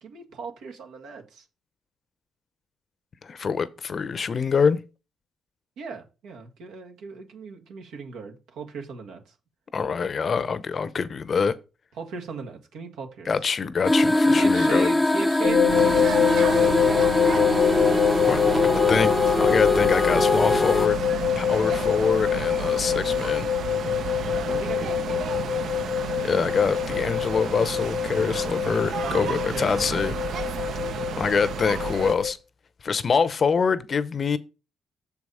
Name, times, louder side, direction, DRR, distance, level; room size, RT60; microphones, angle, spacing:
voice 1, 0.0-1.5 5.8-9.3 12.0-13.3 14.3-17.2 18.5-18.6 24.5-25.3 29.0-30.1, right 4 dB, 85° right, 1.6 m, -37 dB
voice 2, 3.2-4.8 9.7-11.5 13.3-14.9 18.3-21.0 21.4-23.5 26.2-30.1 31.2-32.4 32.8-34.4, left 5 dB, 45° left, 0.7 m, -25 dB
sound 1, 13.8-20.9, left 1 dB, 10° left, 0.4 m, -22 dB
sound 2, 15.4-32.3, left 9 dB, 85° left, 1.0 m, -25 dB
sound 3, 15.7-32.2, right 7 dB, 65° right, 0.7 m, -32 dB
6.9 x 4.8 x 5.5 m
cardioid pair, 90°, 0 cm